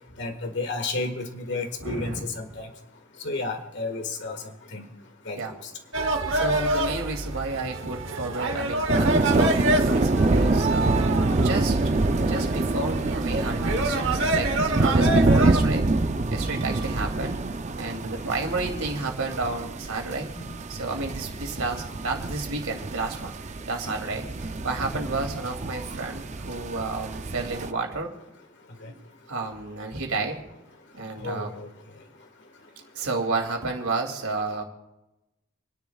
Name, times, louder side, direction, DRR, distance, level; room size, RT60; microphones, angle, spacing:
voice 1, 0.2-2.7 3.2-4.4 4.7-4.9 5.3-5.4 24.9-25.0 31.2-31.5, left 3 dB, 55° left, 5 dB, 1.7 m, -31 dB
voice 2, 1.8-2.3 5.4-5.5 6.3-11.9 12.3-17.4 17.8-20.3 20.7-23.3 23.7-24.3 24.6-28.1 28.7-29.0 29.3-30.4 30.9-31.5 32.9-34.6, right 3 dB, 85° right, 2 dB, 2.7 m, -31 dB
sound 1, 5.9-15.6, right 2 dB, 60° right, 1.1 m, -27 dB
sound 2, 8.1-17.6, left 1 dB, 85° left, 2.2 m, -43 dB
sound 3, 8.9-27.7, right 2 dB, 35° right, 0.5 m, -26 dB
29.5 x 10.5 x 2.4 m, 0.98 s
head